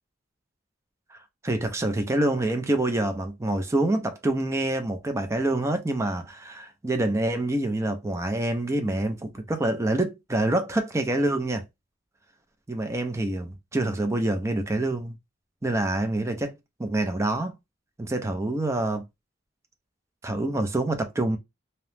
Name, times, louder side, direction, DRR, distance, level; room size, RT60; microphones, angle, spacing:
voice 1, 1.4-11.6 12.7-15.1 15.6-16.5 16.8-17.5 18.0-19.0 20.2-21.4, right 1 dB, 15° right, 0.4 m, -26 dB
2.7 x 2.0 x 3.2 m
head